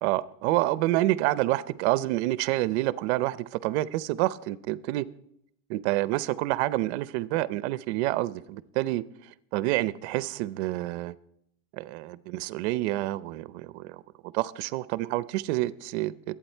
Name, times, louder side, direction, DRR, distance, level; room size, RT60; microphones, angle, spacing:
voice 1, 0.0-5.0 5.7-9.0 9.5-11.1 11.7-14.0 14.3-16.4, right 17 dB, 60° right, 17 dB, 0.7 m, -28 dB
23.0 x 8.8 x 4.5 m, 0.76 s
cardioid pair, 175°, 36 cm